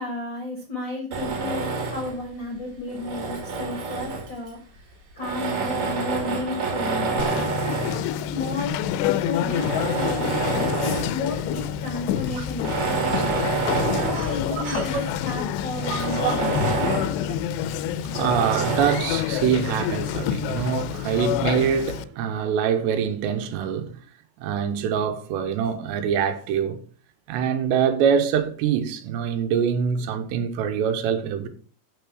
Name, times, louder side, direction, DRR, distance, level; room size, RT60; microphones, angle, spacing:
voice 1, 0.0-4.9 5.1-7.4 8.3-13.1 13.6-16.9, left 3 dB, 50° left, 1.3 m, -33 dB
Tools, 1.1-2.2 2.9-4.5 5.2-8.1 8.8-8.9 9.4-11.2 11.6-11.7 12.5-15.0 15.4-15.5 15.8-17.2 18.1-19.2, right 4 dB, 50° right, 2.5 m, -28 dB
Conversation, 7.2-22.0, left 10 dB, 85° left, 2.6 m, -28 dB
voice 2, 14.1-15.0 15.7-16.5 17.3-17.4 17.8-24.0 24.4-26.8 27.3-31.5, right 7 dB, 80° right, 3.1 m, -25 dB
6.9 x 6.3 x 6.2 m
omnidirectional pair, 5.1 m